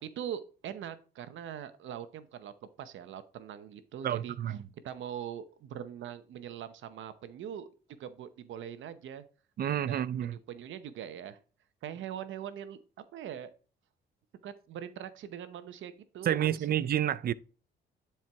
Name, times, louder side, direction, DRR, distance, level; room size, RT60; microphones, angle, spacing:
voice 1, 0.0-2.5 2.8-4.4 4.8-9.2 9.9-11.4 11.8-12.8 13.1-13.5 14.4-16.5, right 9 dB, 75° right, 0.8 m, -42 dB
voice 2, 4.0-4.6 9.6-10.4 16.2-17.3, right 10 dB, 50° right, 0.5 m, -29 dB
10.5 x 4.6 x 3.5 m
cardioid pair, 90°, 20 cm